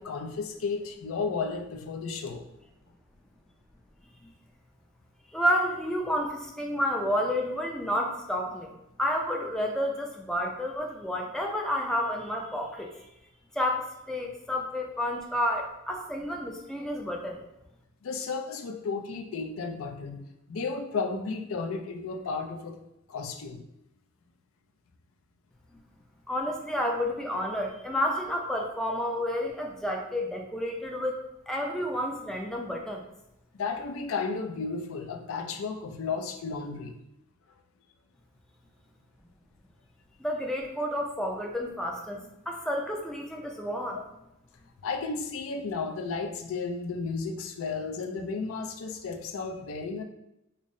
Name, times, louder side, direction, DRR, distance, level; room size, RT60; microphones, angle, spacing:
voice 1, 0.0-2.4 18.0-20.2 20.5-22.8 23.1-23.6 33.5-36.9 43.9-44.0 44.8-50.0, left 4 dB, 70° left, 4 dB, 0.4 m, -33 dB
voice 2, 5.3-8.7 9.0-13.1 13.5-17.4 26.3-33.1 40.2-44.0, equal, 5° left, 0 dB, 0.3 m, -30 dB
5.2 x 2.0 x 2.6 m, 0.87 s
head